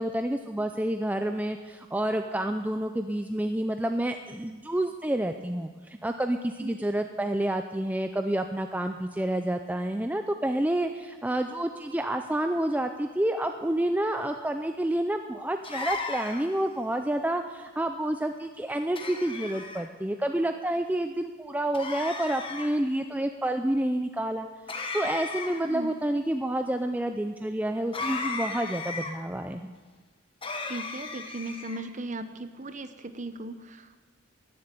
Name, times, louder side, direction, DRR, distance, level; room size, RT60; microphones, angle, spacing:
voice 1, 0.0-24.5 24.9-29.7, right 1 dB, 5° right, 6 dB, 0.4 m, -29 dB
sound 1, 15.6-16.6 19.0-19.8 21.7-22.7 24.7-25.7 27.9-29.1 30.4-31.8, left 3 dB, 25° left, 1.0 m, -35 dB
voice 2, 30.7-34.0, right 2 dB, 35° right, 10 dB, 0.8 m, -37 dB
14.5 x 7.9 x 9.8 m, 1.4 s
head